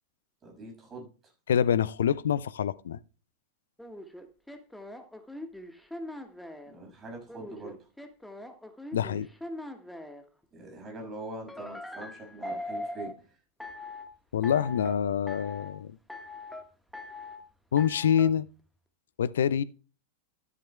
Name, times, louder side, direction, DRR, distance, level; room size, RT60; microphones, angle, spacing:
voice 1, 0.4-1.3 6.7-7.9 10.5-13.4, right 2 dB, 25° right, 6.1 m, -43 dB
voice 2, 1.5-3.0 8.9-9.3 14.3-16.0 17.7-18.5 19.2-19.6, left 8 dB, 65° left, 0.5 m, -26 dB
sound 1, 3.8-6.7 7.3-10.2 11.5-13.1 13.6-14.1 14.4-15.0 15.3-15.7 16.1-16.6 16.9-17.4 17.8-18.3, left 1 dB, 5° left, 1.4 m, -41 dB
13.5 x 11.0 x 2.2 m
figure-of-eight pair, 90°, 0 cm